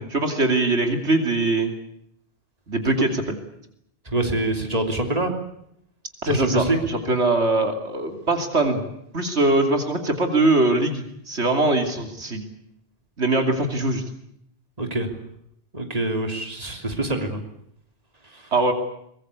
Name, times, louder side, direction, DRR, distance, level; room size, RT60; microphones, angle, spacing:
voice 1, 0.0-1.7 2.7-3.4 6.2-8.8 9.1-12.4 13.2-14.0 18.5-18.7, right 2 dB, 75° right, 5 dB, 3.2 m, -22 dB
voice 2, 4.1-5.3 6.3-6.8 14.8-15.1 15.7-17.4 18.3-18.4, right 2 dB, 35° right, 4 dB, 3.3 m, -25 dB
23.5 x 21.0 x 8.2 m, 0.74 s
omnidirectional pair, 1.2 m